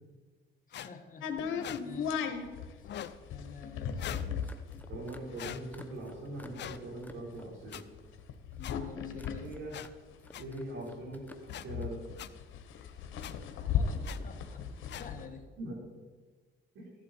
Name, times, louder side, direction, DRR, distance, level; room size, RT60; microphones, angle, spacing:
sound 1, 0.7-0.9 1.6-1.8 2.8-3.2 4.0-4.3 5.4-5.6 6.5-6.8 7.7-7.8 8.6-8.7 9.7-9.9 10.3-10.4 11.5-11.7 12.2-12.3 13.2-13.3 14.0-14.2 14.9-15.1, left 11 dB, 65° left, 0.6 m, -42 dB
voice 1, 0.7-1.5 1.8-2.2 2.8-4.1 8.6-9.5 13.7-14.7 14.9-15.5, left 5 dB, 40° left, 4 dB, 1.8 m, -49 dB
sound 2, 1.2-10.7 11.0-11.1 11.3-15.2, left 7 dB, 85° left, 1.3 m, -37 dB
sound 3, 4.1-7.9 8.2-8.7 9.1-9.9 10.2-11.9, left 1 dB, 10° left, 1.1 m, -55 dB
voice 2, 4.9-7.8 9.1-9.7 10.4-12.0 15.6-15.8 16.7-16.9, right 1 dB, 80° right, -2 dB, 4.7 m, -42 dB
14.5 x 11.5 x 4.5 m, 1.4 s
cardioid pair, 90°, 20 cm